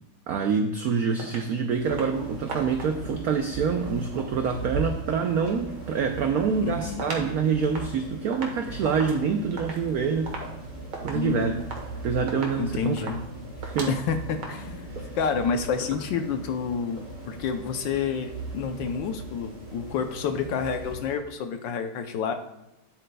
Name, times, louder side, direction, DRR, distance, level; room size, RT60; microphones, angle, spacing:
voice 1, 0.3-10.4 11.0-11.5 12.0-13.1 13.6-13.9 15.0-15.1, right 6 dB, 85° right, 6 dB, 0.8 m, -26 dB
sound 1, 1.2-1.5 1.9-2.2 2.5-3.1 4.0-5.6 6.0-7.3 7.6-14.5, right 3 dB, 60° right, 1.8 m, -40 dB
sound 2, 1.7-21.1, right 2 dB, 30° right, 2.5 m, -39 dB
voice 2, 6.6-7.1 11.1-11.7 12.6-13.2 13.9-22.3, left 6 dB, 70° left, 7 dB, 1.3 m, -29 dB
10.0 x 8.0 x 2.3 m, 0.92 s
omnidirectional pair, 2.3 m